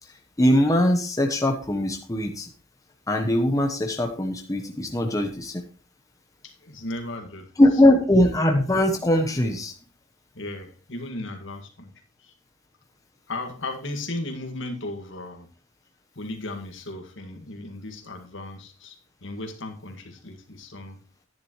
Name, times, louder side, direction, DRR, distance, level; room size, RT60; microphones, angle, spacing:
voice 1, 0.4-2.5 3.1-5.6 7.6-9.7, left 1 dB, 15° left, 3 dB, 0.9 m, -21 dB
voice 2, 6.4-7.5 10.3-11.9 12.2-12.3 13.3-15.5 16.2-21.0, left 2 dB, 70° left, 5 dB, 1.9 m, -36 dB
10.5 x 10.0 x 3.1 m, 0.38 s
head